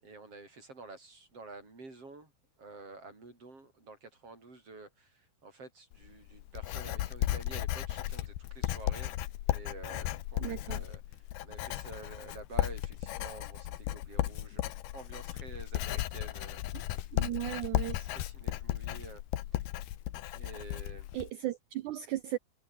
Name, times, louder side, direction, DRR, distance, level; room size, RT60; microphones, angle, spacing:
voice 1, 0.0-2.3 2.6-9.2 9.5-17.1 18.1-19.2 19.5-19.7 20.3-21.1, right 3 dB, 35° right, 8.6 m, -49 dB
Writing, 5.9-21.3, left 14 dB, 75° left, 3.0 m, -35 dB
voice 2, 10.4-10.8 17.1-18.1 21.1-22.4, right 14 dB, 75° right, 1.8 m, -36 dB
omnidirectional pair, 4.6 m